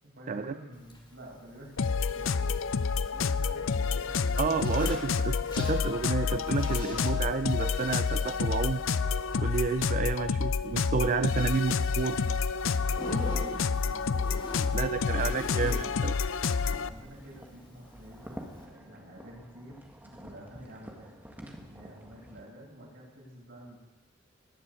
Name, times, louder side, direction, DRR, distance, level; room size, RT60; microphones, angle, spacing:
voice 1, 0.0-2.6 3.0-4.8 13.6-15.2 16.6-21.1 21.6-23.8, equal, 65° right, -4 dB, 7.4 m, -50 dB
Zipper (clothing), 0.7-18.6, left 1 dB, 25° left, 2.7 m, -47 dB
sound 1, 1.8-16.9, left 5 dB, 80° left, 0.5 m, -29 dB
voice 2, 4.4-8.8 9.4-12.3 14.7-16.2, right 5 dB, 40° right, 12 dB, 0.4 m, -30 dB
sound 2, 16.6-22.4, equal, 10° right, 1.8 m, -49 dB
19.0 x 7.2 x 8.4 m, 1.0 s
head